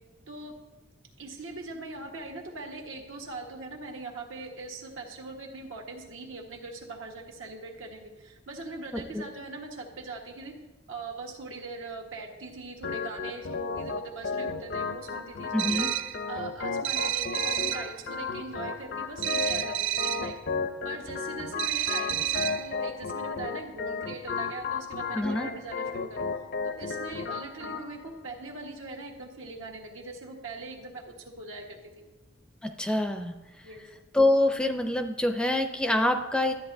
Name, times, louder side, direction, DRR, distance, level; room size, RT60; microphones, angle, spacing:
voice 1, 1.2-10.5 10.9-15.9 16.3-20.3 20.8-26.2 26.6-32.0 33.6-33.8, right 3 dB, 85° right, 0 dB, 1.4 m, -41 dB
voice 2, 8.9-9.3 15.5-15.9 25.1-25.5 32.6-33.3 34.1-36.5, left 1 dB, 5° left, 6 dB, 0.4 m, -26 dB
Organ, 12.8-27.8, left 5 dB, 55° left, 0.5 m, -34 dB
sound 1, 15.6-16.2 16.8-17.9 19.2-20.3 21.6-22.7, right 12 dB, 65° right, 0.3 m, -30 dB
12.5 x 8.2 x 2.6 m, 1.1 s
head